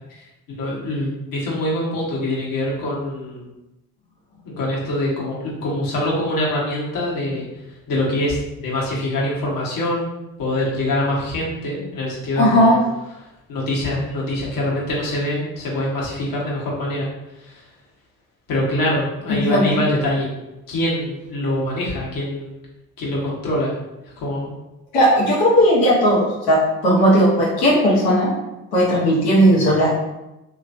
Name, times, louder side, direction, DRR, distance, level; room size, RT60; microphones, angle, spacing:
voice 1, 0.6-3.5 4.4-7.5 7.9-8.4 8.6-12.7 13.5-17.1 17.4-17.6 18.5-20.3 20.7-22.6 23.0-23.7 24.2-24.5, left 1 dB, 65° left, -5 dB, 1.3 m, -24 dB
voice 2, 12.4-12.8 19.3-19.8 24.9-28.3 28.7-29.9, equal, 85° left, -5 dB, 1.1 m, -16 dB
3.3 x 2.9 x 2.6 m, 0.96 s
hypercardioid pair, 55°, 35 cm